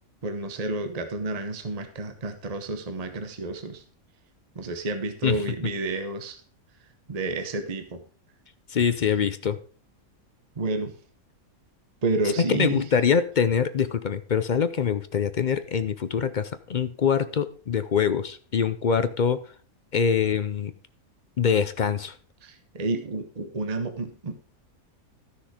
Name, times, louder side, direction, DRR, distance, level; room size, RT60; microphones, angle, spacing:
voice 1, 0.2-3.8 4.5-6.4 7.1-8.0 10.6-10.9 12.0-12.9 22.4-24.3, right 2 dB, 30° right, 8 dB, 1.1 m, -30 dB
voice 2, 8.7-9.6 12.4-19.4 19.9-20.7 21.4-22.2, left 7 dB, 55° left, 12 dB, 0.5 m, -24 dB
13.5 x 6.4 x 5.0 m, 0.41 s
omnidirectional pair, 1.5 m